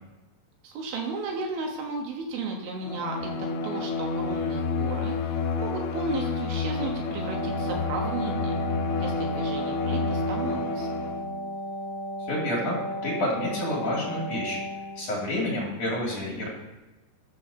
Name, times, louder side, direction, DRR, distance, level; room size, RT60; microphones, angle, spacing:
voice 1, 0.6-8.5 9.0-10.9, right 3 dB, 70° right, 1 dB, 3.4 m, -34 dB
Bowed string instrument, 2.8-11.4, left 4 dB, 80° left, 3.0 m, -29 dB
Wind instrument woodwind instrument, 7.1-15.1, equal, 45° right, 2.5 m, -35 dB
voice 2, 12.2-14.6 15.0-16.5, left 1 dB, 45° left, -4 dB, 3.0 m, -29 dB
11.0 x 6.6 x 6.8 m, 1.1 s
omnidirectional pair, 6.0 m